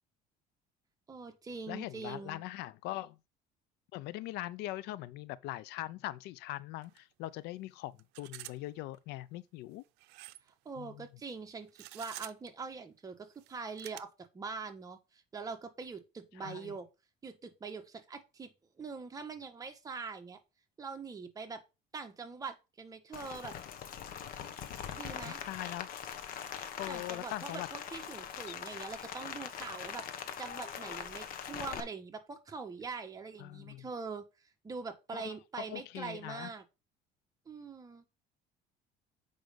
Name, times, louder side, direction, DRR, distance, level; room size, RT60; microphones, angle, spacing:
voice 1, 1.1-2.4 10.6-14.1 14.3-16.9 17.2-20.4 20.8-21.6 21.9-23.5 24.9-25.4 26.9-34.2 34.6-36.6 37.5-38.0, right 4 dB, 20° right, 1.4 m, -43 dB
voice 2, 1.7-3.2 3.9-9.8 10.8-11.1 16.4-16.8 25.2-25.9 26.7-27.7 28.5-28.6 33.4-33.8 35.1-35.4 35.7-36.5, left 16 dB, 75° left, 0.5 m, -41 dB
sound 1, 6.8-7.0 7.3-7.4 8.0-8.6 8.9-9.0 10.0-10.5 11.7-12.5 13.3-14.0, right 18 dB, 80° right, 0.6 m, -48 dB
Rain, 23.1-31.8, left 8 dB, 60° left, 1.2 m, -42 dB
7.8 x 5.2 x 5.2 m
cardioid pair, 145°, 17 cm